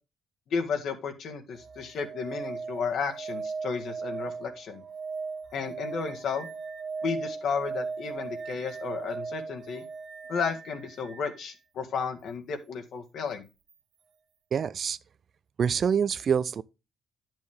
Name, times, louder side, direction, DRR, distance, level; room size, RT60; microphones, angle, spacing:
voice 1, 0.5-4.8 5.5-6.5 7.0-9.8 10.3-13.5, left 5 dB, 70° left, 1.8 m, -33 dB
sound 1, 1.5-11.4 13.7-13.8, right 4 dB, 75° right, 1.2 m, -38 dB
voice 2, 14.5-15.0 15.6-16.6, right 7 dB, 55° right, 0.5 m, -26 dB
10.5 x 6.3 x 3.6 m
supercardioid pair, 70°, 0 cm